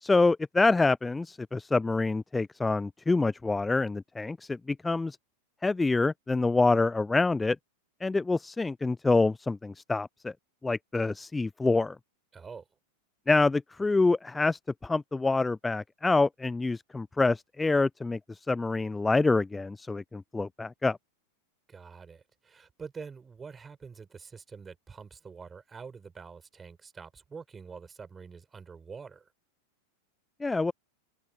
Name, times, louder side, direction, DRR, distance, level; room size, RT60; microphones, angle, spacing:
voice 1, 0.0-5.2 5.6-7.6 8.0-10.3 10.6-12.0 13.3-21.0 30.4-30.7, left 3 dB, 10° left, 0.4 m, -26 dB
voice 2, 12.3-12.7 21.7-29.3, right 5 dB, 15° right, 6.3 m, -46 dB
figure-of-eight pair, 90°, 0 cm